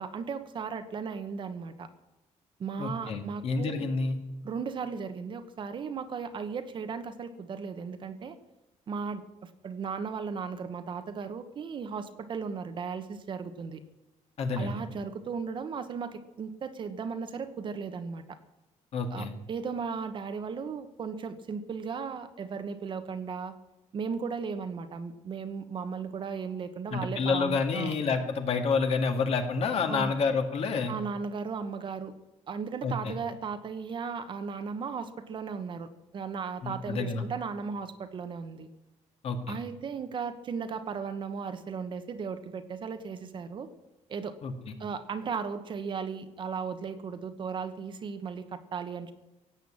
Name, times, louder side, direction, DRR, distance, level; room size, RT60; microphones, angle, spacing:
voice 1, 0.0-1.9 2.6-3.9 4.4-8.4 8.9-13.8 14.5-18.4 19.1-23.5 23.9-28.0 29.9-30.1 30.9-32.1 32.5-38.7 39.5-43.7 44.1-44.3 44.8-49.1, right 5 dB, 40° right, 9 dB, 1.1 m, -36 dB
voice 2, 2.8-4.2 14.4-14.8 18.9-19.3 26.9-30.9 32.8-33.1 36.6-37.2 39.2-39.6 44.4-44.7, left 4 dB, 50° left, 5 dB, 2.1 m, -29 dB
17.0 x 8.1 x 8.7 m, 0.98 s
cardioid pair, 170°, 13 cm